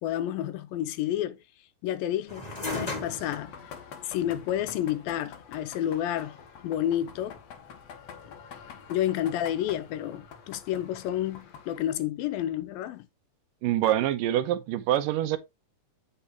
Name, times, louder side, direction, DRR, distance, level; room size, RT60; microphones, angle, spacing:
voice 1, 0.0-1.4 1.8-3.6 4.0-6.4 6.6-7.4 8.9-13.1, left 11 dB, 90° left, 2.6 m, -30 dB
sound 1, 2.3-11.5, left 2 dB, 15° left, 1.7 m, -42 dB
sound 2, 2.4-11.8, left 7 dB, 60° left, 1.9 m, -47 dB
voice 2, 13.6-15.4, right 12 dB, 80° right, 2.4 m, -25 dB
8.3 x 6.7 x 3.0 m
omnidirectional pair, 4.0 m